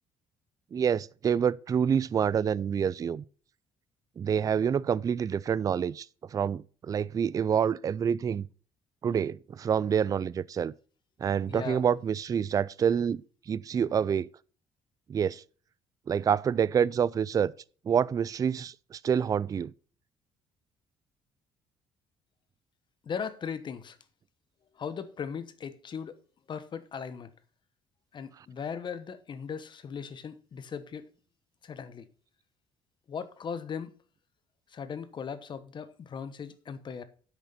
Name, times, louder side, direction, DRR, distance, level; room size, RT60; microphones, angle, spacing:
voice 1, 0.7-3.2 4.2-6.1 6.3-8.4 9.0-10.7 11.2-14.3 15.1-15.4 16.1-17.5 17.9-19.7, right 7 dB, 30° right, 0.3 m, -27 dB
voice 2, 11.5-11.8 23.0-24.0 24.8-26.2 26.5-27.3 28.1-31.1 31.6-32.1 33.1-33.9 34.7-37.0, left 6 dB, 45° left, 1.1 m, -38 dB
8.1 x 6.7 x 5.6 m
cardioid pair, 100°, 11 cm